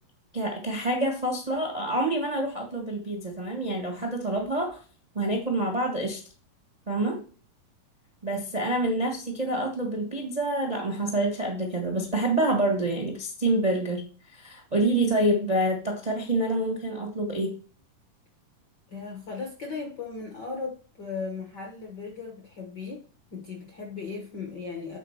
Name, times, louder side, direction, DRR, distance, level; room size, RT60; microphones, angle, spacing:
voice 1, 0.3-4.8 5.1-6.2 6.9-7.2 8.2-14.0 14.3-17.5, right 1 dB, 60° right, 2 dB, 0.4 m, -27 dB
voice 2, 18.9-23.0 23.3-25.0, left 4 dB, 65° left, 1 dB, 1.0 m, -37 dB
8.2 x 4.0 x 5.8 m, 0.38 s
omnidirectional pair, 3.8 m